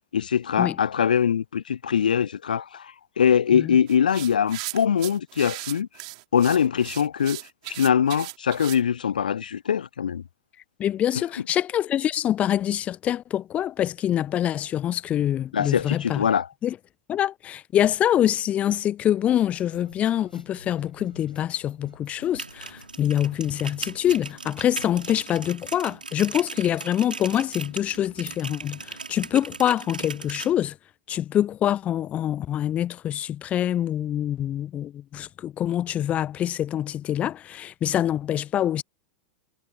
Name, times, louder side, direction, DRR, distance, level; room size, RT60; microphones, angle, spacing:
voice 1, 0.1-5.9 6.3-7.4 7.7-10.2 15.5-16.5, left 8 dB, 70° left, 0.6 m, -22 dB
sound 1, 3.9-8.8, right 24 dB, 50° right, 3.8 m, -37 dB
voice 2, 10.8-16.2 16.6-16.7 17.1-30.7 31.1-38.8, left 11 dB, 30° left, 0.8 m, -25 dB
sound 2, 19.3-25.2, left 2 dB, 85° left, 5.3 m, -50 dB
sound 3, 22.2-30.5, right 4 dB, 80° right, 7.0 m, -38 dB
figure-of-eight pair, 90°, 5 cm